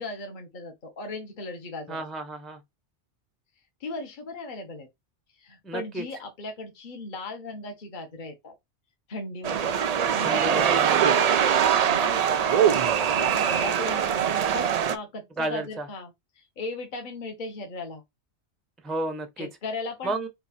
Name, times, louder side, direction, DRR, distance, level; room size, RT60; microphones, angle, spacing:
voice 1, 0.0-2.0 3.8-4.9 5.4-8.5 9.1-9.8 10.1-10.7 11.8-12.4 13.0-16.1 16.6-18.0 19.4-20.2, left 3 dB, 45° left, 1.1 m, -37 dB
voice 2, 1.9-2.6 5.6-6.1 10.2-11.1 15.4-15.9 18.8-19.5 20.0-20.3, right 2 dB, ahead, 0.5 m, -32 dB
sound 1, 9.4-15.0, right 8 dB, 70° right, 0.3 m, -22 dB
4.6 x 2.4 x 4.1 m
omnidirectional pair, 1.2 m